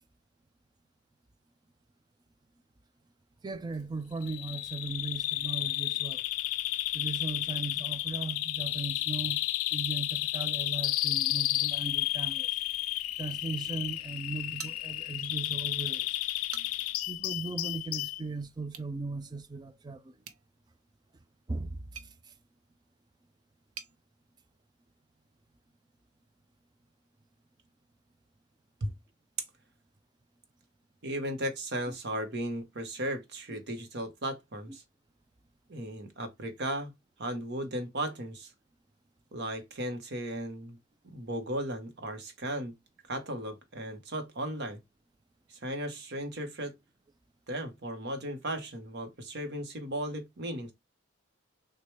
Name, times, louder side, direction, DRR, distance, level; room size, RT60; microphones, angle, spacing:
voice 1, 3.4-6.2 6.9-9.4 9.7-12.5 13.2-16.1 17.1-20.1 21.5-21.8 31.9-32.0 34.7-34.8, right 3 dB, 20° right, 0.4 m, -37 dB
Bird vocalization bird call bird song, 4.2-18.2, left 16 dB, 85° left, 0.3 m, -32 dB
sound 1, 14.6-15.3 15.7-15.8 16.3-17.0 18.6-18.9 20.2-24.0, right 8 dB, 85° right, 0.6 m, -49 dB
voice 2, 31.0-34.8 35.7-36.9 37.2-38.5 39.3-40.8 41.0-42.7 43.1-44.8 45.5-46.7 47.5-50.7, right 1 dB, 55° right, 0.9 m, -36 dB
6.4 x 2.2 x 3.1 m
head